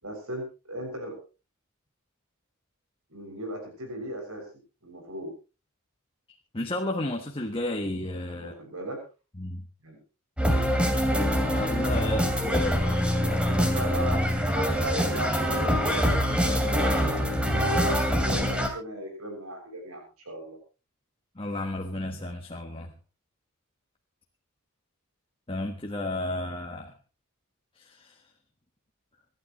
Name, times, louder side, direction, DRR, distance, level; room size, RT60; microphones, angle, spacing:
voice 1, 0.0-1.1 3.1-4.4 4.8-5.3 8.4-9.0 9.8-10.0 12.6-14.2 14.5-17.4 17.7-20.6, right 1 dB, 85° right, 2 dB, 6.6 m, -37 dB
voice 2, 6.5-8.5 9.4-9.6 11.3-12.9 21.3-22.9 25.5-26.9 27.8-28.1, left 1 dB, 25° left, 2 dB, 1.4 m, -32 dB
sound 1, 10.4-18.7, equal, 5° right, 2.8 m, -24 dB
26.5 x 12.0 x 3.1 m, 0.32 s
head